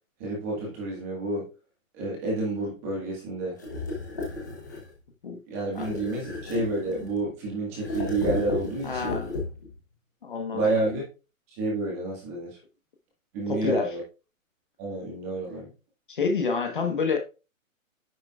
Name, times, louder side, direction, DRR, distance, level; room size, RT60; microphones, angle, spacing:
voice 1, 0.2-1.5 1.9-3.6 5.5-9.2 10.5-11.0 11.6-12.5 13.3-14.0 14.8-15.7, right 2 dB, 10° right, 1.6 m, -29 dB
sound 1, 3.6-4.9 5.7-7.3 7.8-9.8, left 3 dB, 15° left, 0.9 m, -33 dB
voice 2, 8.8-9.4 10.2-10.7 13.5-13.9 16.1-17.2, left 4 dB, 40° left, 1.2 m, -28 dB
9.8 x 7.0 x 2.4 m
hypercardioid pair, 175°, 41 cm